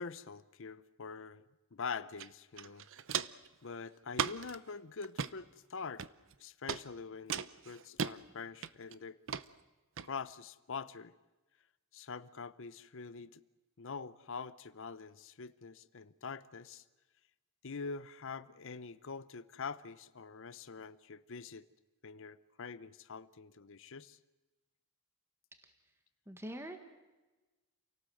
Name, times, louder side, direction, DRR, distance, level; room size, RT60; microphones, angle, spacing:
voice 1, 0.0-1.4 1.7-2.9 3.6-6.0 6.4-9.2 10.0-11.1 11.9-13.4 13.8-16.8 17.6-21.7 22.0-24.2, left 5 dB, 65° left, 14 dB, 0.8 m, -45 dB
Walk footsteps, 2.2-2.3 2.6-3.5 4.1-4.6 5.0-5.3 6.0-6.3 6.7-6.8 7.3-8.1 8.6-8.9 9.3-9.4 10.0-10.1, right 7 dB, 65° right, 0.8 m, -36 dB
voice 2, 26.3-26.8, equal, 10° right, 6 dB, 1.7 m, -44 dB
28.5 x 18.0 x 7.9 m, 1.1 s
head